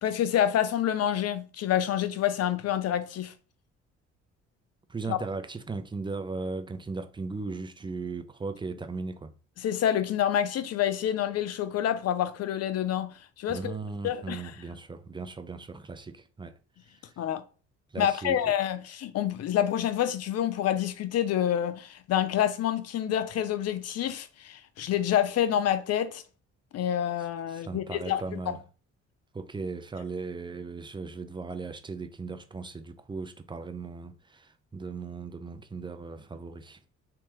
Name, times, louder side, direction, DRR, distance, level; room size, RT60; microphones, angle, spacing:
voice 1, 0.0-3.3 5.1-5.2 9.6-13.7 14.0-14.4 17.2-17.4 18.0-26.2 26.7-28.6, left 10 dB, 50° left, 0.5 m, -28 dB
voice 2, 4.9-9.3 13.5-16.6 17.9-18.5 27.5-28.6 29.3-36.8, right 4 dB, 15° right, 0.4 m, -37 dB
3.3 x 3.0 x 2.9 m
hypercardioid pair, 60°, 33 cm